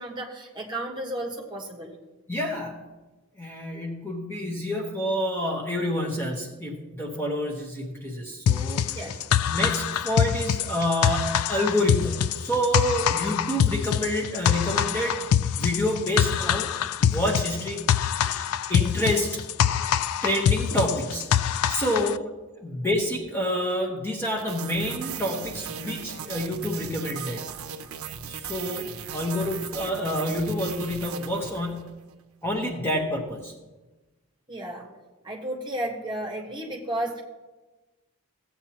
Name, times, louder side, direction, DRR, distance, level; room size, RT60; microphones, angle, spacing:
voice 1, 0.0-2.0 8.9-9.2 21.9-22.1 34.5-34.9 35.2-37.2, right 1 dB, 20° right, -1 dB, 1.4 m, -33 dB
voice 2, 2.3-2.8 3.4-9.0 9.5-15.2 15.6-16.7 17.0-17.8 18.7-19.4 20.2-21.2 21.7-22.2 22.6-27.4 28.3-32.0 32.4-33.5, equal, 10° left, -2 dB, 1.1 m, -28 dB
sound 1, 8.5-22.2, left 9 dB, 85° left, 0.3 m, -24 dB
sound 2, 24.4-31.9, right 7 dB, 75° right, 0.6 m, -37 dB
16.0 x 8.4 x 3.0 m, 1.2 s
head